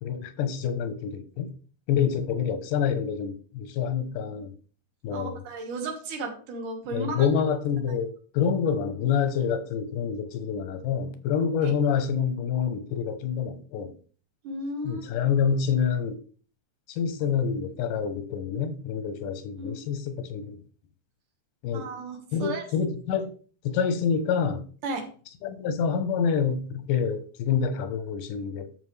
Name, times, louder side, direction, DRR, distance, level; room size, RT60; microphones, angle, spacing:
voice 1, 0.0-1.5 1.9-4.5 5.0-5.4 6.9-13.9 14.8-16.2 16.9-20.6 21.6-21.9 22.3-23.3 23.6-24.6 25.4-28.9, left 7 dB, 85° left, 10 dB, 2.5 m, -27 dB
voice 2, 5.1-7.3 11.6-11.7 14.4-15.1 19.6-19.9 21.7-22.7 24.8-25.1, right 2 dB, 80° right, 3 dB, 3.2 m, -34 dB
13.0 x 5.5 x 3.3 m, 0.41 s
omnidirectional pair, 3.6 m